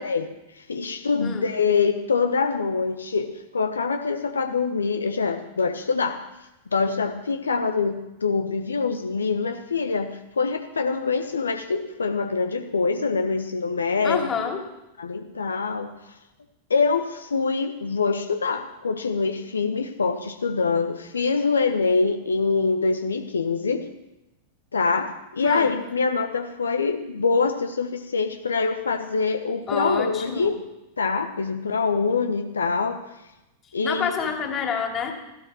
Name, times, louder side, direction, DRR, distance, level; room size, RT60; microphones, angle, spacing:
voice 1, 0.0-6.2 6.7-14.3 15.0-15.9 16.7-23.9 24.7-30.6 31.0-33.0 33.7-34.2, left 4 dB, 75° left, 6 dB, 1.2 m, -24 dB
voice 2, 14.0-14.6 25.4-25.7 29.7-30.6 33.8-35.1, left 6 dB, 25° left, 2 dB, 3.1 m, -28 dB
15.5 x 12.5 x 6.3 m, 0.95 s
figure-of-eight pair, 90°, 0 cm